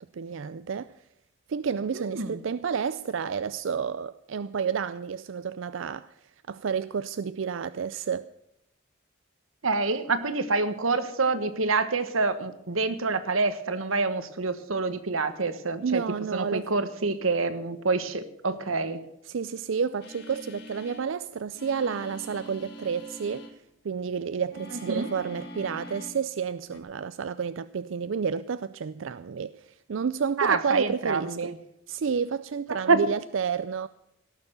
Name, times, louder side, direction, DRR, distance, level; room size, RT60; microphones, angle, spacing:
voice 1, 0.1-0.9 1.5-6.2 6.5-8.2 15.8-16.6 19.3-23.5 23.8-31.5 31.9-33.9, right 6 dB, 75° right, 0.4 m, -30 dB
voice 2, 1.9-2.4 9.6-16.0 16.3-19.0 24.9-25.1 30.4-31.6 32.7-33.0, right 3 dB, 90° right, 1.3 m, -27 dB
sound 1, 20.0-21.1 21.5-23.5 24.5-26.2 26.6-26.8, equal, 55° left, 1.9 m, -43 dB
17.5 x 6.9 x 7.9 m
head